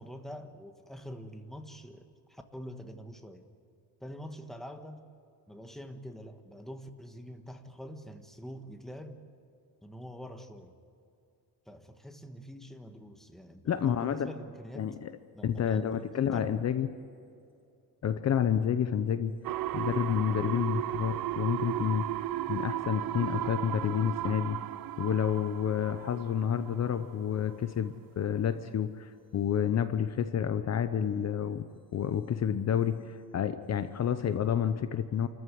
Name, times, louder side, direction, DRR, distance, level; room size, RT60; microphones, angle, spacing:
voice 1, 0.0-3.5 4.0-5.0 5.5-9.2 9.8-10.7 11.7-15.0 15.3-16.6, equal, ahead, 5 dB, 1.4 m, -45 dB
voice 2, 13.6-14.3 14.8-15.1 15.4-16.9 18.0-19.4 19.7-22.1 22.5-24.6 25.0-35.3, left 8 dB, 45° left, 11 dB, 0.8 m, -29 dB
sound 1, 19.4-27.1 27.5-27.6, right 13 dB, 65° right, 0.7 m, -35 dB
28.5 x 14.5 x 9.3 m, 2.5 s
cardioid pair, 150°, 38 cm